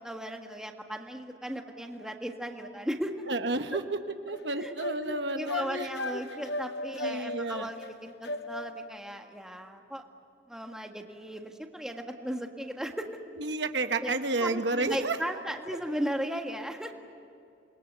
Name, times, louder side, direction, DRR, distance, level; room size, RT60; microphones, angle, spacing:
voice 1, 0.0-3.2 4.6-4.7 5.0-10.0 10.5-13.1 14.0-16.9, equal, 5° right, 3 dB, 1.6 m, -36 dB
voice 2, 3.3-3.8 4.3-5.9 7.0-7.7 13.4-15.2, right 3 dB, 70° right, 7 dB, 1.2 m, -31 dB
sound 1, 4.3-8.9, left 2 dB, 70° left, 1.1 m, -36 dB
27.5 x 21.5 x 8.1 m, 2.4 s
head